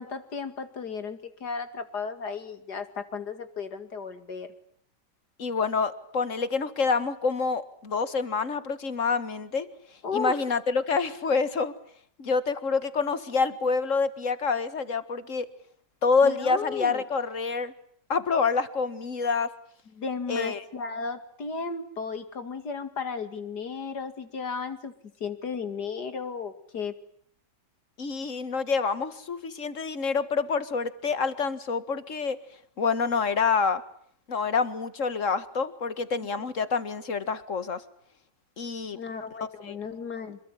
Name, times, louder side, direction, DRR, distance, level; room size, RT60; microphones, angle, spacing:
voice 1, 0.0-4.5 10.0-10.4 16.2-17.0 19.9-24.9 25.2-27.0 38.9-40.4, left 5 dB, 65° left, 10 dB, 2.8 m, -34 dB
voice 2, 5.4-9.7 10.1-11.7 12.2-15.5 16.0-17.7 18.1-19.5 20.3-20.6 28.0-32.4 32.8-33.8 34.3-37.8 38.6-39.0 39.6-39.8, left 5 dB, 45° left, 13 dB, 2.0 m, -27 dB
27.0 x 22.0 x 10.0 m, 0.63 s
omnidirectional pair, 1.9 m